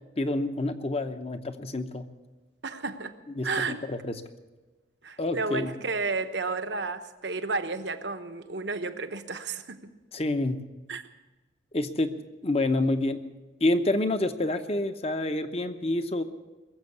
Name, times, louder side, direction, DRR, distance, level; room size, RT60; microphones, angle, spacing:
voice 1, 0.2-2.0 3.3-4.2 5.2-5.7 10.1-10.6 11.7-13.3 13.6-16.2, left 2 dB, 30° left, 9 dB, 0.8 m, -28 dB
voice 2, 2.6-3.8 5.0-10.0 10.9-11.0, right 3 dB, 65° right, 8 dB, 1.0 m, -32 dB
21.5 x 7.6 x 8.2 m, 1.2 s
head